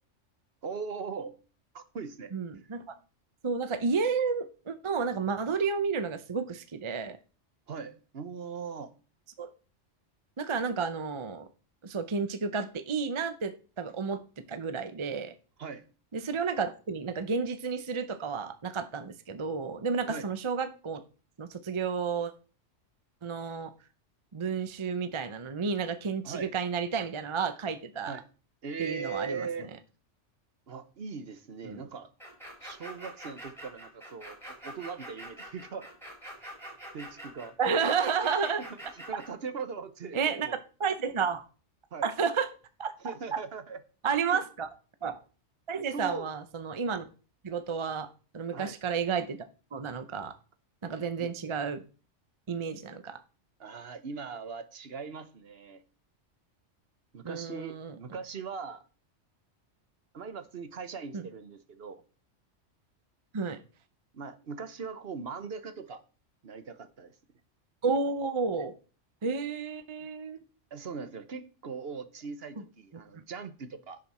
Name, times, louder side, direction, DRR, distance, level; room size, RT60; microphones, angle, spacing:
voice 1, 0.6-1.3 1.7-2.3 7.7-8.9 15.6-15.8 20.1-20.3 26.2-26.5 28.1-28.2 28.6-29.7 30.7-32.1 32.6-35.9 36.9-37.5 38.9-40.6 41.9-42.1 43.0-43.8 44.3-44.4 45.9-46.3 48.5-48.8 51.2-51.3 53.6-55.8 57.1-58.8 60.1-62.0 64.1-66.0 66.4-67.1 70.7-74.0, right 5 dB, 55° right, 1.2 m, -40 dB
voice 2, 2.3-3.0 3.4-7.2 9.4-9.5 10.4-11.5 11.8-15.3 16.1-21.0 21.4-22.3 23.2-23.7 24.3-28.2 28.8-29.5 31.6-31.8 37.6-38.6 40.1-41.4 42.0-42.5 42.8-42.9 44.0-44.7 45.0-45.2 45.7-47.1 47.4-48.1 48.3-49.4 49.7-50.3 50.8-51.8 52.5-53.2 57.2-58.0 61.1-61.3 63.3-63.6 67.8-68.7 69.2-70.4 72.9-73.0, right 5 dB, 30° right, 0.6 m, -31 dB
sound 1, 32.2-39.3, equal, ahead, 4.6 m, -45 dB
11.0 x 9.0 x 4.2 m
omnidirectional pair, 1.2 m